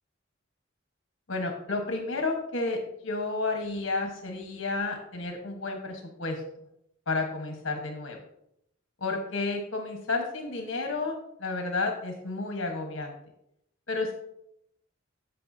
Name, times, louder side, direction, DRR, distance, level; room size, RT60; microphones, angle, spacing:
voice 1, 1.3-2.8 3.0-6.4 7.1-8.2 9.0-13.1 13.9-14.1, left 3 dB, 70° left, 3 dB, 1.4 m, -31 dB
14.0 x 5.6 x 2.8 m, 0.76 s
head